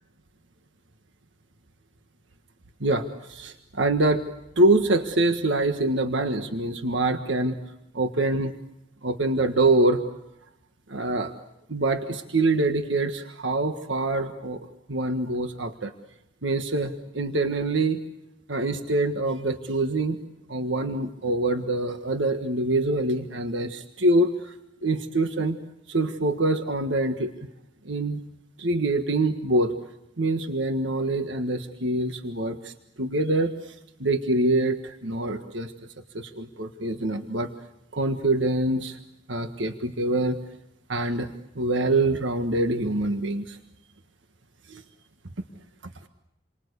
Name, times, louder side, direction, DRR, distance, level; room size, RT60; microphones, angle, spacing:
voice 1, 2.8-4.2 4.6-7.6 7.9-8.5 9.0-10.0 10.9-11.3 11.7-15.9 16.4-18.0 18.5-20.2 20.5-24.5 24.8-25.6 25.9-27.3 27.8-28.2 28.6-29.7 30.2-32.7 33.0-33.7 34.0-35.7 36.1-37.5 37.9-39.0 39.3-40.4 40.9-43.6 44.7-44.8, right 2 dB, 80° right, 6 dB, 1.6 m, -25 dB
29.0 x 24.5 x 8.3 m, 0.86 s
head